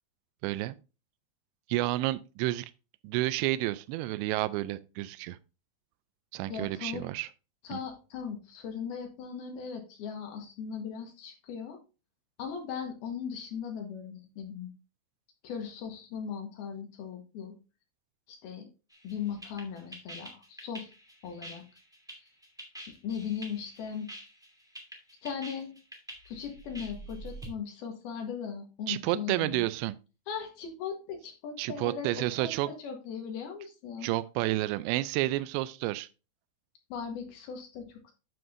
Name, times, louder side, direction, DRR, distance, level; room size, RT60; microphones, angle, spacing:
voice 1, 0.4-0.8 1.7-2.7 3.0-5.4 6.3-7.3 7.7-7.8 28.9-30.0 31.6-32.7 34.0-36.1, right 17 dB, 90° right, 2.8 m, -30 dB
voice 2, 6.5-7.1 7.6-11.8 12.4-14.7 15.4-17.5 18.3-18.7 19.0-20.9 21.2-21.6 22.9-24.1 25.2-25.7 26.3-29.7 30.3-34.1 36.9-38.1, left 7 dB, 70° left, 2.9 m, -38 dB
sound 1, 18.9-27.5, right 1 dB, ahead, 1.2 m, -46 dB
9.6 x 7.8 x 2.6 m
omnidirectional pair, 5.0 m